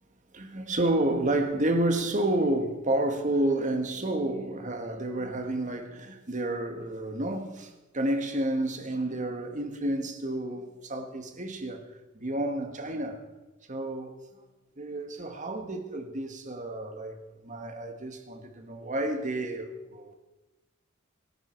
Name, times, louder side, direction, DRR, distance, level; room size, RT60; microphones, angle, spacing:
voice 1, 0.3-11.8 12.2-13.2 13.7-14.2 14.8-17.2 17.4-20.2, right 1 dB, 40° right, 1.7 m, -30 dB
26.0 x 11.5 x 4.6 m
head